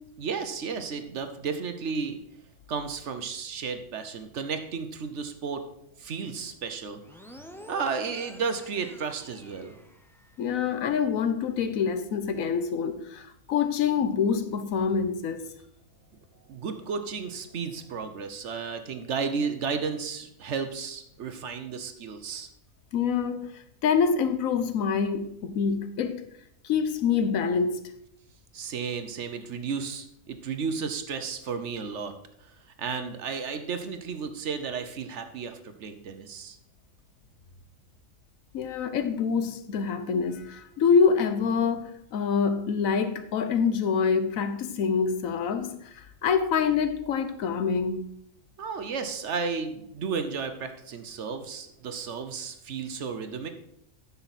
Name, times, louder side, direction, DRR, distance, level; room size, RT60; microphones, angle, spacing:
voice 1, 0.2-2.2 2.7-5.6 6.0-7.0 7.7-9.8 16.5-22.5 28.5-32.1 32.4-36.6 48.6-53.5, right 5 dB, 60° right, 1.1 m, -33 dB
sound 1, 7.0-10.5, equal, 5° left, 0.4 m, -48 dB
voice 2, 10.4-15.5 22.9-26.3 26.6-27.8 38.5-48.1, left 6 dB, 75° left, 1.2 m, -26 dB
10.0 x 6.9 x 4.1 m
omnidirectional pair, 1.4 m